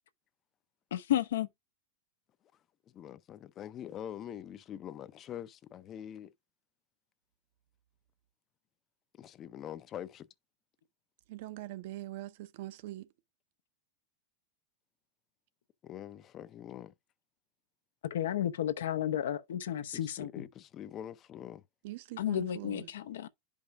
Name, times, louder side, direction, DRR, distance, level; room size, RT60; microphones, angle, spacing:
voice 1, 0.9-1.5 18.0-20.4 22.2-23.3, left 11 dB, 85° left, 0.8 m, -32 dB
voice 2, 2.9-6.3 9.5-10.3 15.8-16.9 19.9-21.6, left 10 dB, 25° left, 0.5 m, -44 dB
voice 3, 11.3-13.1 21.8-22.9, right 16 dB, 55° right, 0.6 m, -43 dB
10.5 x 5.2 x 2.5 m
supercardioid pair, 165°, 0 cm